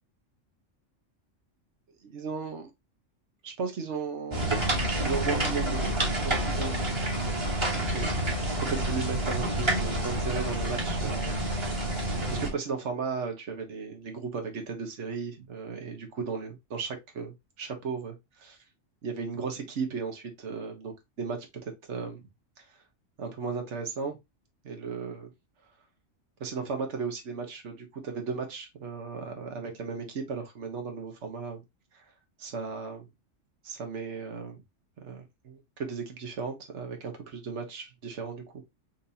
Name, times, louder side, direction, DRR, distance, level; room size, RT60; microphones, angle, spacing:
voice 1, 2.0-2.7 3.4-4.5 5.0-5.9 6.2-7.0 7.7-8.2 8.6-11.3 12.3-18.6 19.0-22.2 22.6-22.7 23.2-24.2 24.6-25.3 26.4-31.6 31.9-32.0 32.4-33.0 33.6-34.6 35.0-38.6, right 5 dB, 70° right, 1.4 m, -35 dB
sound 1, 4.3-12.5, right 1 dB, 25° right, 1.3 m, -28 dB
5.8 x 2.8 x 2.7 m
omnidirectional pair, 1.3 m